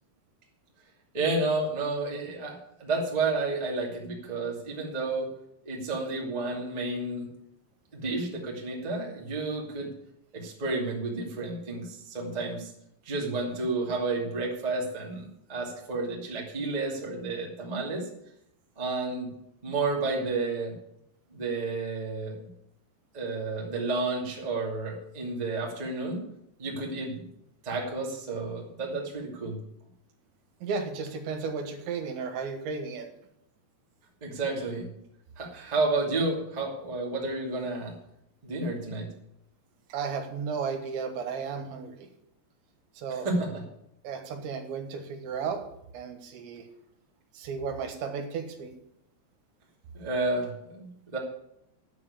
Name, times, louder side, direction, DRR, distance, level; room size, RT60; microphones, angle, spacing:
voice 1, 1.1-5.3 5.6-7.3 7.9-9.9 10.3-12.7 13.0-18.1 18.7-19.3 19.6-20.7 21.3-22.3 23.1-26.2 26.6-27.2 27.6-29.6 34.2-34.9 35.3-37.9 38.4-39.1 43.2-43.5 49.9-51.2, right 3 dB, 15° right, -2 dB, 1.3 m, -31 dB
voice 2, 30.6-33.1 39.9-42.1 43.0-43.3 44.0-45.6 45.9-46.7 47.3-48.7, right 5 dB, 80° right, 5 dB, 3.7 m, -34 dB
9.7 x 7.7 x 8.8 m, 0.78 s
omnidirectional pair, 5.3 m